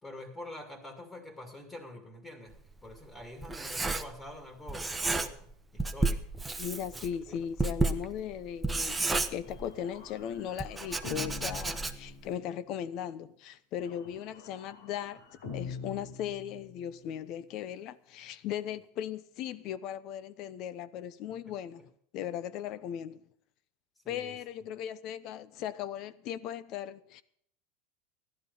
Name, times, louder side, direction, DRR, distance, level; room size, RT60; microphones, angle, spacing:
voice 1, 0.0-6.2 6.9-7.4 24.0-24.4, left 1 dB, 15° left, 2.5 m, -46 dB
Writing, 2.5-4.4 4.7-5.5 5.8-10.0 10.6-12.2, right 3 dB, 10° right, 1.1 m, -32 dB
voice 2, 6.6-23.3 24.1-27.2, left 9 dB, 55° left, 0.9 m, -38 dB
sound 1, 9.4-12.7 13.8-17.1, left 5 dB, 90° left, 5.3 m, -45 dB
15.0 x 12.0 x 5.4 m
supercardioid pair, 115°, 0 cm